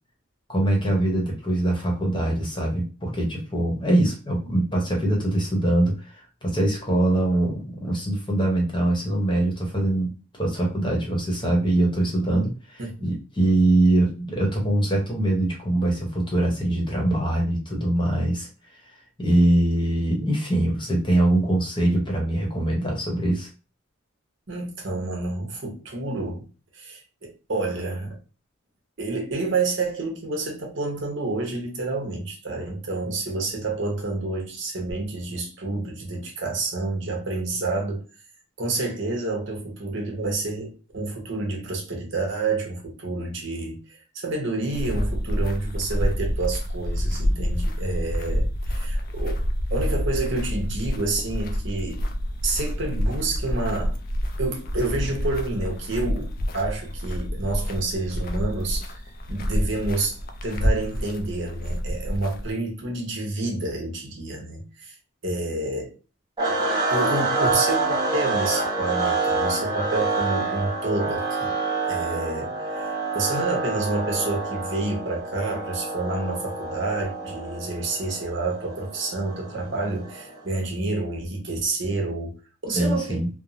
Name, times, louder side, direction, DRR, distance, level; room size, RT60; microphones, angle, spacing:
voice 1, 0.5-18.5 18.8-18.9 19.2-23.5 82.7-83.3, right 1 dB, 25° left, 0.9 m, -23 dB
voice 2, 12.8-13.2 24.5-26.4 26.7-28.2 29.0-38.0 38.6-49.4 49.7-52.0 52.4-54.0 54.4-58.9 59.3-65.0 65.2-65.9 66.5-71.5 71.8-83.2, right 2 dB, 65° right, 0.9 m, -29 dB
sound 1, 44.7-62.5, equal, 45° left, 0.4 m, -28 dB
sound 2, 66.4-80.5, right 3 dB, 20° right, 0.7 m, -27 dB
3.3 x 2.0 x 2.5 m
head